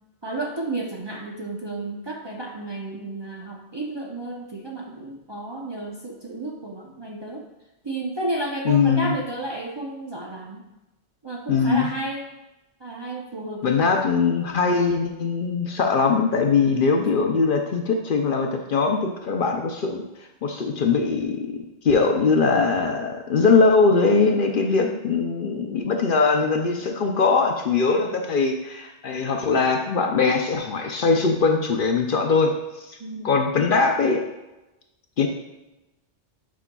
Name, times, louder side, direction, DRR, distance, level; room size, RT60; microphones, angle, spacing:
voice 1, 0.2-7.5 7.8-10.6 11.2-12.2 12.8-13.9 17.0-17.2 24.6-25.0 33.0-33.4, right 2 dB, 30° right, -2 dB, 0.6 m, -32 dB
voice 2, 8.7-9.1 11.5-11.9 13.6-20.0 20.4-32.5 32.8-33.0 33.2-34.2 35.2-35.3, left 4 dB, 55° left, 3 dB, 0.7 m, -21 dB
8.4 x 5.4 x 2.3 m, 0.99 s
omnidirectional pair, 1.1 m